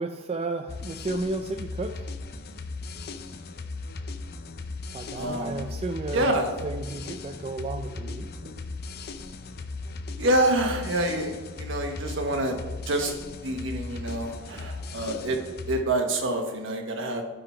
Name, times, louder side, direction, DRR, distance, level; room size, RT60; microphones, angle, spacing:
voice 1, 0.0-2.2 4.9-8.3, right 2 dB, 30° right, 5 dB, 0.3 m, -33 dB
sound 1, 0.7-15.8, left 3 dB, 50° left, 0.5 m, -37 dB
voice 2, 5.1-5.7 6.1-6.5 10.2-12.6 12.9-13.1 13.4-15.4 15.7-17.2, right 1 dB, 65° right, 3 dB, 1.3 m, -27 dB
10.0 x 3.9 x 5.6 m, 1.3 s
head